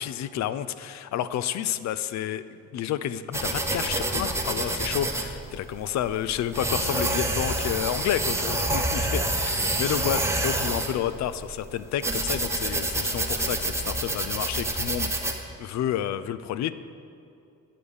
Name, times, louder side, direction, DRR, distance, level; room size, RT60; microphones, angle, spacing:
voice 1, 0.0-2.4 2.7-15.2 15.6-16.7, left 10 dB, 65° left, 14 dB, 0.4 m, -30 dB
sound 1, 3.3-15.4, right 2 dB, 10° right, 0.9 m, -28 dB
9.8 x 5.0 x 7.1 m, 2.6 s
cardioid pair, 90°, 30 cm